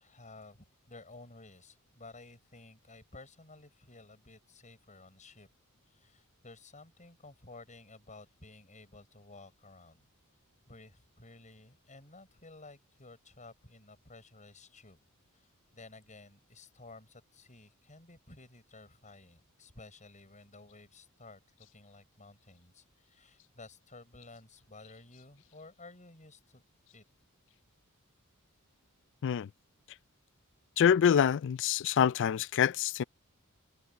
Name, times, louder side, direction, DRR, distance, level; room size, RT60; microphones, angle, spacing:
voice 1, 0.0-5.5 5.9-10.1 10.7-15.0 15.3-21.4 21.7-26.6 26.9-27.0, left 3 dB, 35° left, 7.2 m, -54 dB
voice 2, 30.8-33.0, left 8 dB, 55° left, 0.3 m, -26 dB
head